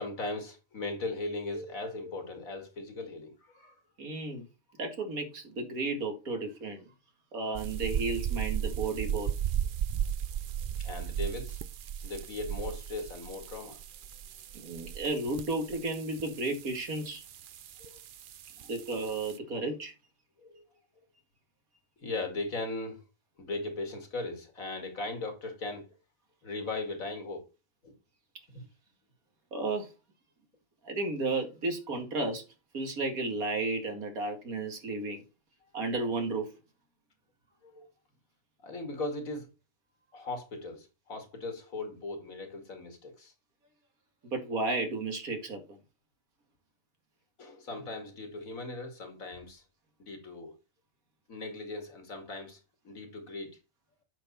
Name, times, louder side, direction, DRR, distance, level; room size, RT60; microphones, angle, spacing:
voice 1, 0.0-3.7 10.8-11.6 12.0-13.8 17.8-17.9 20.4-20.6 22.0-23.0 23.4-25.9 26.4-27.5 27.8-27.9 28.5-28.6 37.6-37.9 38.6-39.5 40.1-43.3 47.4-49.6 50.0-50.5 51.3-52.6 52.8-53.6, left 2 dB, 70° left, 2.5 m, -38 dB
voice 2, 4.0-4.4 4.8-6.8 7.3-9.3 14.5-17.2 18.7-19.9 29.5-29.9 30.8-32.4 32.7-35.2 35.7-36.5 44.2-45.8, right 3 dB, 85° right, 2.5 m, -33 dB
sound 1, 7.5-19.4, right 9 dB, 65° right, 0.5 m, -36 dB
8.8 x 6.1 x 4.2 m
omnidirectional pair, 1.5 m